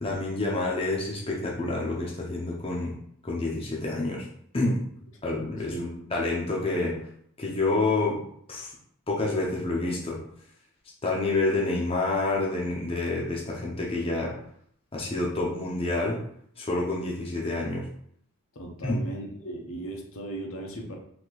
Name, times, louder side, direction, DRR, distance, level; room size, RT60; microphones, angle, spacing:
voice 1, 0.0-3.0 3.2-4.3 4.5-4.8 5.2-7.0 7.4-8.2 8.5-8.7 9.1-10.2 11.0-14.3 14.9-16.2 16.6-17.9 18.8-19.0, left 2 dB, 25° left, -3 dB, 0.8 m, -28 dB
voice 2, 18.5-21.0, right 1 dB, 60° left, 0 dB, 0.9 m, -37 dB
4.0 x 2.9 x 4.6 m, 0.66 s
head